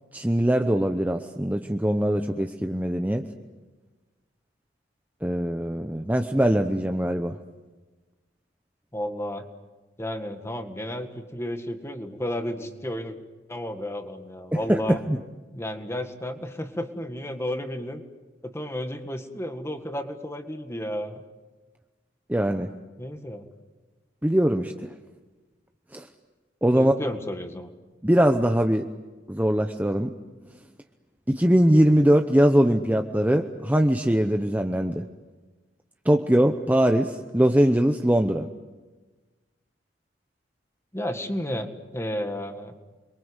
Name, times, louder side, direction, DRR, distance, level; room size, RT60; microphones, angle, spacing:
voice 1, 0.1-3.3 5.2-7.4 14.5-15.2 22.3-22.7 24.2-24.9 25.9-26.1 26.6-26.9 28.0-28.9 29.3-30.1 31.3-35.0 36.0-38.5, equal, 10° right, 5 dB, 0.8 m, -22 dB
voice 2, 8.9-9.5 10.0-13.2 13.5-15.0 15.5-18.0 18.4-21.2 23.0-23.5 26.7-27.7 40.9-42.8, left 1 dB, 15° left, 7 dB, 1.8 m, -32 dB
29.5 x 23.0 x 8.1 m, 1.2 s
head